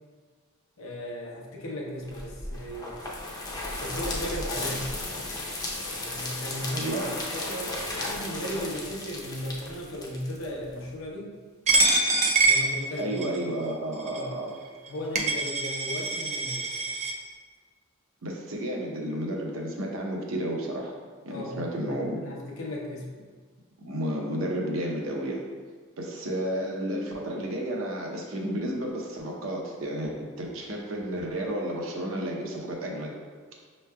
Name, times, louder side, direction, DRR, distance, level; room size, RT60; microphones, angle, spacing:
voice 1, 0.8-3.0 3.8-4.9 6.0-11.3 12.5-13.5 14.1-14.3 14.9-16.8 21.3-23.1, equal, 80° left, -2 dB, 0.7 m, -36 dB
sound 1, 2.1-10.9, left 2 dB, 20° left, 0.5 m, -35 dB
voice 2, 6.7-7.1 13.0-14.5 18.2-20.9 21.2-22.2 23.8-25.4 26.0-33.1, right 1 dB, 70° right, -1 dB, 0.7 m, -32 dB
Coin (dropping), 11.7-13.4 14.1-14.2 14.9-15.0 15.2-17.1, right 2 dB, 35° right, 0.4 m, -24 dB
5.6 x 3.2 x 2.2 m, 1.5 s
head